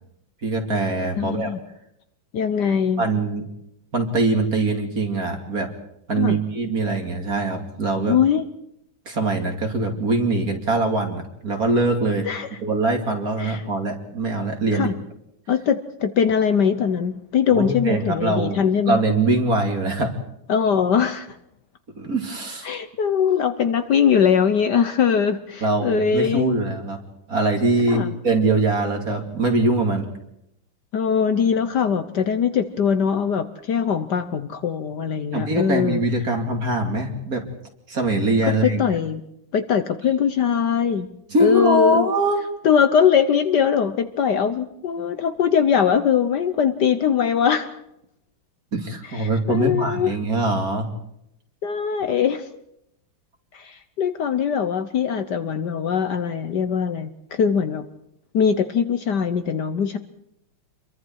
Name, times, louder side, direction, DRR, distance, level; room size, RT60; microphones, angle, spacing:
voice 1, 0.4-1.5 3.0-3.5 3.9-5.7 6.1-8.2 9.1-12.3 12.6-14.9 17.5-18.6 18.9-20.1 22.0-22.7 25.6-27.0 27.3-30.1 35.3-37.5 37.9-38.8 41.3-42.4 48.7-50.9, right 2 dB, 45° right, 3 dB, 3.0 m, -22 dB
voice 2, 1.2-1.6 2.3-3.0 6.2-6.4 8.1-8.4 12.3-12.5 13.4-13.6 14.7-14.9 15.5-19.0 20.5-21.3 22.6-26.6 27.9-28.1 30.9-36.0 38.4-39.2 39.5-41.1 41.4-42.1 42.6-47.8 49.1-50.1 51.6-52.5 53.5-57.8 58.3-60.0, left 7 dB, 60° left, 10 dB, 1.4 m, -21 dB
27.5 x 23.0 x 4.7 m, 0.80 s
omnidirectional pair, 2.3 m